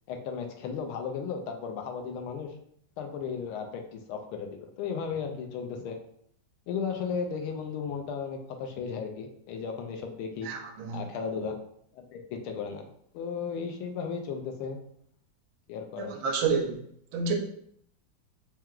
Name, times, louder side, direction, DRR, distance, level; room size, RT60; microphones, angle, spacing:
voice 1, 0.1-2.5 3.0-6.0 6.7-10.5 10.9-11.5 11.9-12.8 13.1-14.8 15.7-16.1, left 6 dB, 85° left, 5 dB, 1.5 m, -35 dB
voice 2, 10.4-11.0 16.0-16.8 17.1-17.4, right 5 dB, 80° right, 3 dB, 1.4 m, -29 dB
4.5 x 2.2 x 3.7 m, 0.68 s
omnidirectional pair, 2.3 m